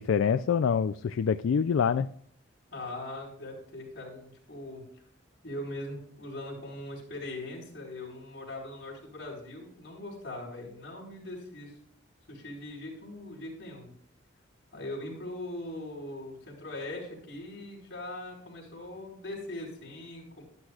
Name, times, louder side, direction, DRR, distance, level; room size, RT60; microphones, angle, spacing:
voice 1, 0.0-2.1, left 6 dB, 80° left, 10 dB, 0.3 m, -26 dB
voice 2, 2.7-4.8 5.4-11.7 12.3-13.9 14.7-20.4, left 1 dB, 55° left, -3 dB, 4.5 m, -40 dB
12.5 x 11.5 x 2.4 m, 0.63 s
head